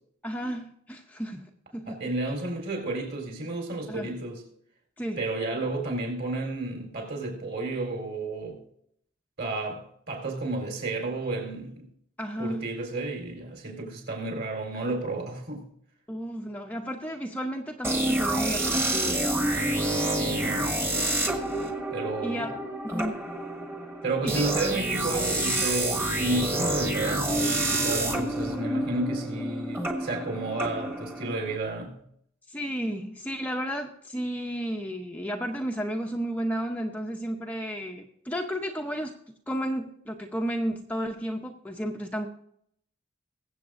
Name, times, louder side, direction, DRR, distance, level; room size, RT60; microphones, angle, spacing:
voice 1, 0.2-2.0 3.9-4.1 5.0-5.2 12.2-12.7 16.1-19.8 22.2-22.5 22.8-23.2 24.2-24.5 32.5-39.2 39.5-42.3, equal, 5° left, 0.7 m, -33 dB
voice 2, 1.9-4.5 5.2-8.6 9.4-11.9 12.4-15.7 20.2-20.7 21.9-22.5 24.0-32.0, right 2 dB, 50° right, 4.1 m, -32 dB
sound 1, 17.8-31.6, right 1 dB, 10° right, 1.3 m, -28 dB
22.5 x 7.9 x 2.6 m
head